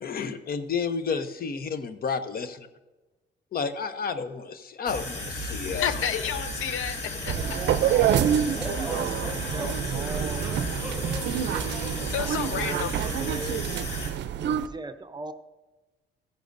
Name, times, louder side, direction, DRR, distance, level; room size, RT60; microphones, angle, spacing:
voice 1, 0.0-2.7 3.5-5.9, left 5 dB, 50° left, 0.8 m, -31 dB
sound 1, 4.9-14.1, left 1 dB, 65° left, 1.9 m, -34 dB
voice 2, 5.7-7.6 12.1-12.9, left 9 dB, 80° left, 0.6 m, -31 dB
voice 3, 7.3-10.5 12.5-13.8 14.4-15.3, right 3 dB, 20° right, 0.7 m, -39 dB
sound 2, 7.3-14.7, right 9 dB, 65° right, 0.5 m, -27 dB
sound 3, 8.6-13.4, right 1 dB, 5° right, 3.9 m, -39 dB
14.5 x 10.5 x 2.6 m
cardioid pair, 90°, 20 cm